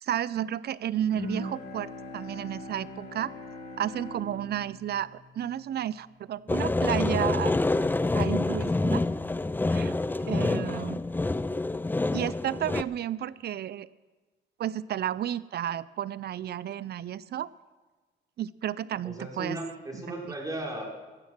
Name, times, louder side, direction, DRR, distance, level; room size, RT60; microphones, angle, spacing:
voice 1, 0.0-3.3 3.8-7.6 8.1-9.0 9.7-11.0 12.1-13.9 14.6-17.5 18.4-19.6 20.3-20.4, right 11 dB, 55° right, 19 dB, 0.5 m, -32 dB
Bowed string instrument, 1.1-6.5, left 1 dB, 55° left, 3.6 m, -41 dB
sound 1, 6.5-12.8, left 2 dB, 10° left, 0.4 m, -27 dB
voice 2, 10.4-10.8 19.0-20.9, right 1 dB, 20° right, -1 dB, 3.7 m, -36 dB
15.0 x 10.5 x 6.1 m, 1.3 s
cardioid pair, 90°, 20 cm